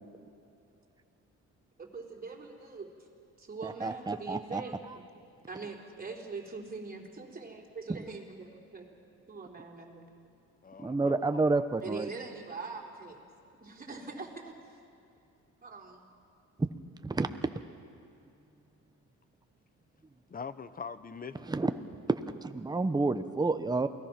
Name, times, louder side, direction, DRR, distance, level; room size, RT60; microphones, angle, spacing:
voice 1, 1.8-3.1 3.4-5.0 5.5-8.9 9.3-10.0 11.8-13.2 13.6-14.8 15.6-16.1, right 4 dB, 30° right, 0 dB, 3.6 m, -43 dB
voice 2, 3.6-4.6 10.8-12.1 16.6-16.7 17.0-17.5 21.5-21.7 22.1-23.9, right 3 dB, 15° right, 9 dB, 0.9 m, -29 dB
voice 3, 10.6-11.5 20.3-21.5, left 5 dB, 30° left, 13 dB, 1.0 m, -42 dB
28.5 x 19.0 x 6.0 m, 2.7 s
cardioid pair, 90°, 30 cm